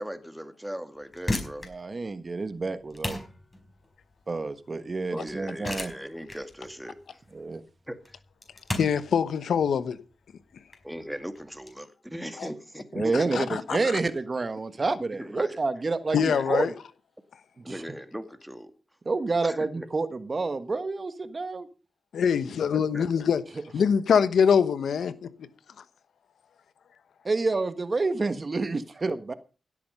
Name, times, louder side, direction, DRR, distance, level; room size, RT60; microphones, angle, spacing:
voice 1, 0.0-1.7 5.1-7.2 7.9-8.2 10.8-13.3 15.1-15.6 16.1-16.7 17.6-18.7 19.4-19.9 22.7-23.0, equal, 5° right, 2.2 m, -38 dB
sound 1, 1.0-11.7, left 1 dB, 25° left, 4.9 m, -37 dB
voice 2, 1.7-3.2 4.3-5.9 7.3-7.6 12.9-16.7 17.7-17.8 19.0-21.7 27.2-29.3, right 3 dB, 45° right, 1.4 m, -28 dB
voice 3, 8.7-10.0 12.4-12.5 13.0-13.9 16.1-16.7 22.1-23.4 23.7-25.3, left 7 dB, 90° left, 1.1 m, -24 dB
16.5 x 8.6 x 5.5 m
cardioid pair, 65°, 0 cm